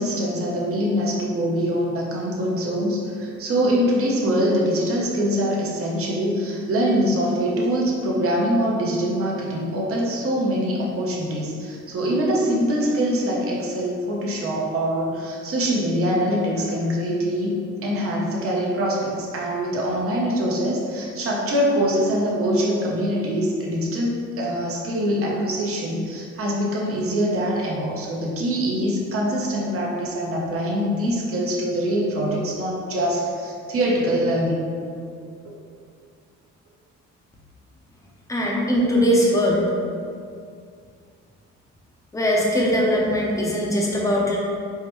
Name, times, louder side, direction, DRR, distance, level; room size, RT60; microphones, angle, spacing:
voice 1, 0.0-17.5 17.8-34.6, equal, 50° right, -3 dB, 0.8 m, -23 dB
voice 2, 38.3-39.7 42.1-44.4, equal, 10° left, -3 dB, 0.7 m, -20 dB
4.5 x 2.2 x 3.0 m, 2.3 s
cardioid pair, 90°, 30 cm